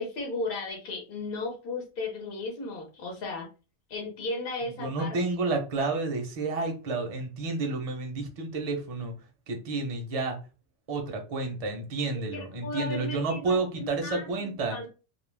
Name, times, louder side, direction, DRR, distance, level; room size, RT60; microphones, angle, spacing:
voice 1, 0.0-3.5 3.9-5.2 12.1-14.9, left 3 dB, 60° left, 0 dB, 0.9 m, -35 dB
voice 2, 4.8-9.1 9.5-10.4 10.9-14.8, right 3 dB, 40° right, 3 dB, 0.6 m, -30 dB
2.3 x 2.1 x 3.2 m, 0.32 s
omnidirectional pair, 1.1 m